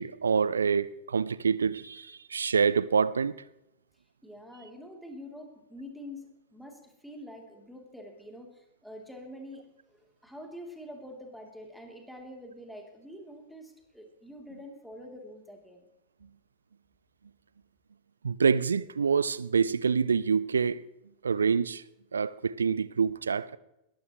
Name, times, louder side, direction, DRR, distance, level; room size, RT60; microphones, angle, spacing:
voice 1, 0.0-3.3 18.2-20.8 21.2-21.8 22.1-23.6, right 6 dB, 70° right, 0.5 m, -26 dB
voice 2, 4.2-15.8, left 1 dB, ahead, 3.3 m, -46 dB
21.0 x 15.0 x 3.2 m
figure-of-eight pair, 90°, 0 cm